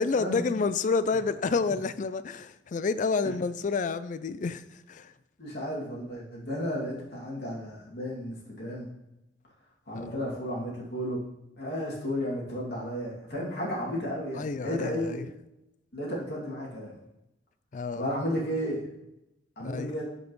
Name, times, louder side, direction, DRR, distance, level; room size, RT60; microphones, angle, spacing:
voice 1, 0.0-5.1 9.9-10.4 14.4-15.3 17.7-18.1 19.6-20.0, left 4 dB, 45° left, 14 dB, 0.4 m, -29 dB
voice 2, 5.4-8.9 9.9-11.2 11.6-15.2 15.9-17.0 18.0-18.9 19.6-20.0, equal, 65° left, -4 dB, 2.5 m, -33 dB
11.0 x 5.2 x 3.1 m, 0.89 s
head